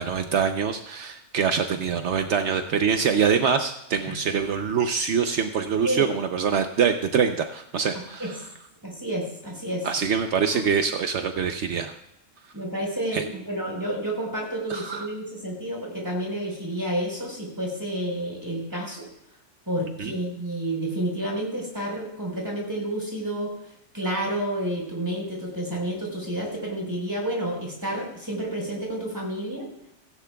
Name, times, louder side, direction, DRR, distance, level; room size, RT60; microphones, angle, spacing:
voice 1, 0.0-8.4 9.8-12.0 13.1-13.2 14.7-15.1 20.0-20.1, right 6 dB, 70° right, 7 dB, 1.0 m, -24 dB
voice 2, 8.8-9.9 10.5-10.6 12.5-19.1 19.7-23.5 23.9-29.7, right 1 dB, 15° right, -1 dB, 4.4 m, -30 dB
16.5 x 15.5 x 2.3 m, 0.81 s
omnidirectional pair, 1.2 m